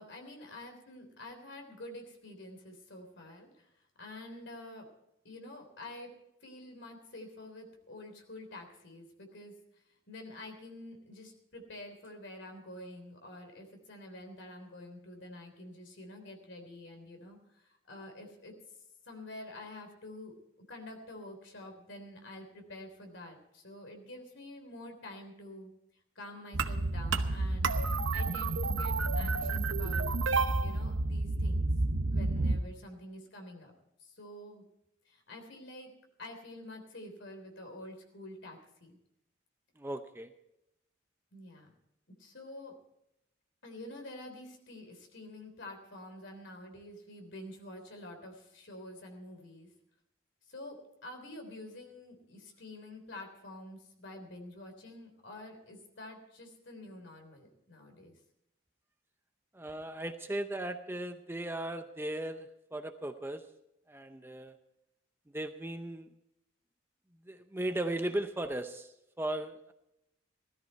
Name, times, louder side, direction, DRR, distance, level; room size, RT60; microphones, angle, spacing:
voice 1, 0.0-4.9 5.2-6.1 6.4-18.5 19.0-20.3 20.7-25.7 26.1-27.8 28.1-30.1 30.6-31.6 32.1-33.7 34.0-34.6 35.0-35.9 36.2-39.0 41.3-41.7 42.2-42.7 43.6-49.7 50.4-58.2, left 1 dB, 60° left, 4 dB, 3.5 m, -48 dB
sound 1, 26.5-32.6, right 3 dB, 70° right, 0.9 m, -30 dB
voice 2, 39.8-40.3 59.5-63.5 63.9-64.5 65.3-66.1 67.2-69.7, right 1 dB, 10° right, 7 dB, 0.6 m, -37 dB
17.0 x 13.5 x 4.5 m, 0.83 s
head